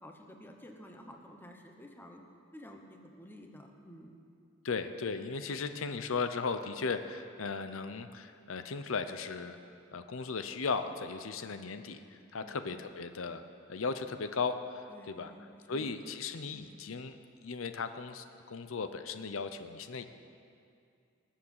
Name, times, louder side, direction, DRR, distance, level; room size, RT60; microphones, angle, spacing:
voice 1, 0.0-2.2 2.5-4.1 12.4-12.6 14.9-16.1 16.5-17.0, equal, 10° left, 3 dB, 1.0 m, -52 dB
voice 2, 4.6-9.6 9.9-13.4 13.7-15.3 15.7-20.0, left 4 dB, 80° left, 9 dB, 0.7 m, -36 dB
19.0 x 7.4 x 7.2 m, 2.4 s
head